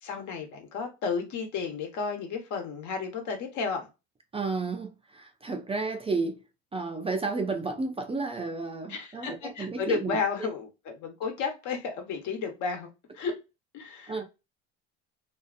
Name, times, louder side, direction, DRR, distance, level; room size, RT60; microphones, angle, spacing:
voice 1, 0.0-3.9 8.9-12.9 13.1-13.3 13.7-14.1, left 5 dB, 60° left, 1.1 m, -32 dB
voice 2, 4.3-6.4 6.7-10.2 14.1-14.2, right 3 dB, 15° right, 0.4 m, -32 dB
2.7 x 2.4 x 2.3 m
supercardioid pair, 95°, 33 cm